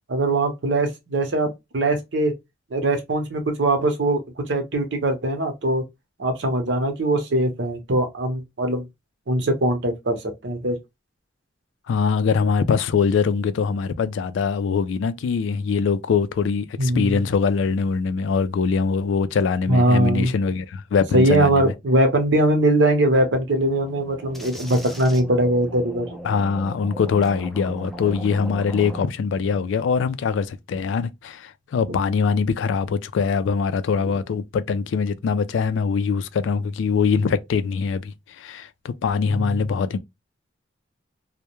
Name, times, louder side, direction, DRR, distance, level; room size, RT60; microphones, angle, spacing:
voice 1, 0.1-2.3 2.7-5.8 6.2-8.8 9.3-10.2 10.4-10.8 16.8-17.2 19.7-20.3 21.1-26.1 39.3-39.4, right 1 dB, 70° right, 0.7 m, -21 dB
voice 2, 11.9-21.7 26.2-40.0, left 5 dB, 80° left, 0.3 m, -23 dB
sound 1, 23.5-29.1, right 1 dB, ahead, 0.3 m, -38 dB
2.2 x 2.1 x 2.9 m
head